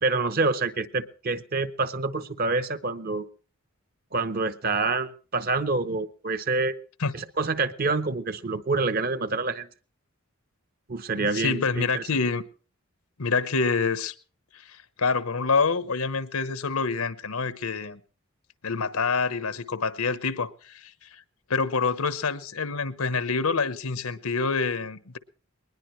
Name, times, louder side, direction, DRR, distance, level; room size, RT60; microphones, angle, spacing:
voice 1, 0.0-3.3 4.1-6.7 7.1-9.7 10.9-12.0, right 3 dB, 45° right, 0.9 m, -27 dB
voice 2, 11.1-12.4 13.2-14.1 14.5-18.0 18.6-21.2 21.5-25.2, left 4 dB, 90° left, 1.0 m, -27 dB
21.0 x 20.0 x 3.2 m
head